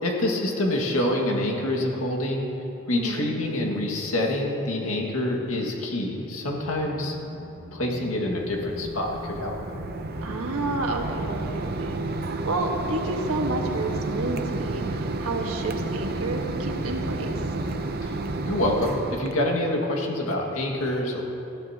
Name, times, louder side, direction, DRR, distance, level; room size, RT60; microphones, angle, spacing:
voice 1, 0.0-2.5 2.9-7.2 7.7-9.6 18.0-18.1 18.5-21.2, left 1 dB, 80° left, 0 dB, 2.1 m, -26 dB
voice 2, 2.9-3.3 10.2-12.0 12.4-17.4, right 2 dB, 85° right, 1 dB, 1.6 m, -30 dB
sound 1, 6.5-17.8, left 1 dB, 25° left, 3.6 m, -43 dB
Mechanisms, 8.4-19.3, right 2 dB, 45° right, 0.7 m, -31 dB
20.0 x 14.5 x 3.0 m, 2.9 s
head